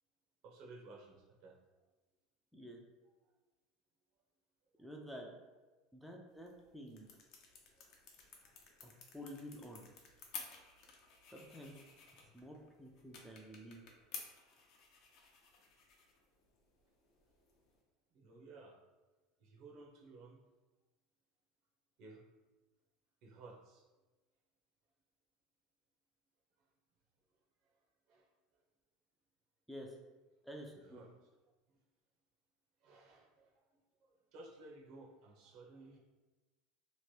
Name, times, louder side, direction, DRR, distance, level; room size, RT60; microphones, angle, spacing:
voice 1, 0.4-1.6 4.8-4.9 5.7-5.8 8.4-8.5 18.1-18.8 19.4-20.4 22.0-22.2 23.2-23.9 26.6-26.7 27.6-28.3 30.7-31.3 31.7-31.8 32.8-36.0, right 3 dB, 60° right, 0 dB, 0.6 m, -57 dB
voice 2, 4.8-5.3 5.9-7.1 8.8-9.8 11.3-11.7 12.3-13.8 29.7-29.9 30.4-31.0, equal, ahead, -1 dB, 0.3 m, -50 dB
sound 1, 6.3-17.8, left 5 dB, 55° left, 0.6 m, -55 dB
2.9 x 2.1 x 3.1 m, 1.2 s
supercardioid pair, 135°, 0 cm